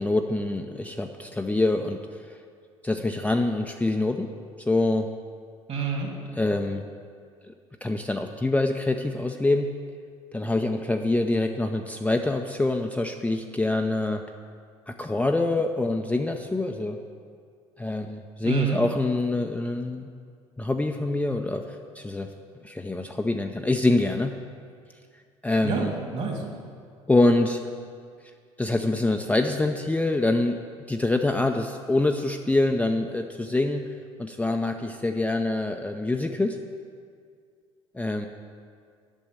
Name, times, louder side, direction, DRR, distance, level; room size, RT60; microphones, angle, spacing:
voice 1, 0.0-2.2 2.8-4.3 4.6-5.1 6.4-6.8 7.5-7.6 7.8-9.7 10.3-14.2 14.9-17.0 17.8-20.1 20.6-22.3 22.6-24.4 25.4-25.9 27.1-27.6 28.6-30.6 30.9-33.9 34.2-36.6 37.9-38.3, left 2 dB, 10° left, 4 dB, 0.5 m, -25 dB
voice 2, 5.7-6.1 18.4-18.8 25.6-26.4, right 6 dB, 45° right, 0 dB, 2.5 m, -28 dB
8.7 x 6.2 x 7.6 m, 2.1 s
figure-of-eight pair, 60°, 16 cm